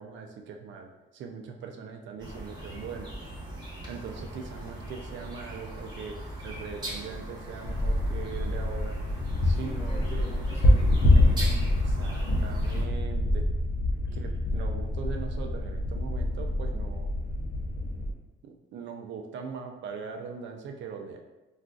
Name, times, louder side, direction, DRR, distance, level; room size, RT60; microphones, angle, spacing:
voice 1, 0.0-3.1 3.9-9.0 9.4-10.3 11.1-11.6 11.9-13.5 14.1-17.1 18.4-21.2, right 6 dB, 70° right, 3 dB, 0.4 m, -41 dB
sound 1, 2.2-12.8, right 1 dB, 20° right, 1.0 m, -40 dB
sound 2, 7.7-18.1, left 1 dB, 65° left, 0.6 m, -26 dB
voice 2, 9.5-11.9 14.1-14.3, left 1 dB, 30° left, -4 dB, 1.3 m, -44 dB
3.7 x 2.4 x 2.4 m, 1.0 s
cardioid pair, 90°, 20 cm